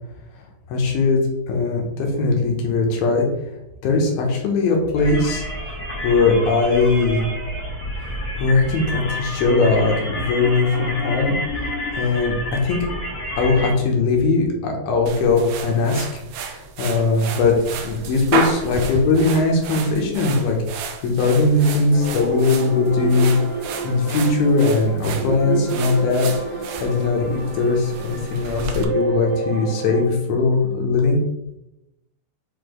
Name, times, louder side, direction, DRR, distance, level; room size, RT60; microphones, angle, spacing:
voice 1, 0.7-1.2 1.5-3.3 3.8-5.4 6.0-7.2 8.4-11.4 12.0-12.8 13.4-17.5 17.8-23.3 23.8-26.3 26.8-31.2, left 3 dB, 80° left, 1 dB, 2.9 m, -20 dB
sound 1, 4.9-13.7, left 1 dB, 25° left, 1.9 m, -29 dB
sound 2, 15.1-28.8, right 5 dB, 85° right, 2.7 m, -32 dB
sound 3, 21.9-30.0, right 4 dB, 50° right, 3.5 m, -29 dB
7.5 x 4.1 x 3.3 m, 0.90 s
omnidirectional pair, 4.4 m